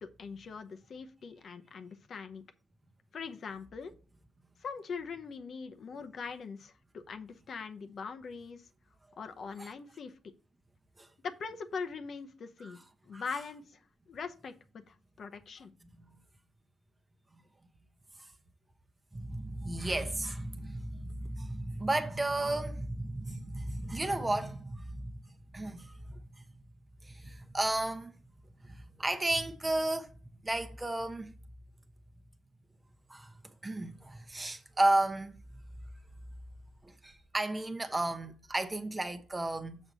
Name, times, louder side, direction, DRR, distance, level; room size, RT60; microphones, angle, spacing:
voice 1, 0.0-2.4 3.1-3.9 4.6-8.7 9.2-10.1 11.2-12.8 13.0-13.8 14.1-15.7, left 5 dB, 55° left, 0.7 m, -42 dB
voice 2, 19.1-25.1 25.5-26.4 27.0-28.1 28.6-30.1 30.4-31.3 33.1-33.3 33.6-35.3 36.8-39.8, right 2 dB, 20° right, 0.8 m, -33 dB
6.4 x 5.9 x 4.0 m
cardioid pair, 90°, 0 cm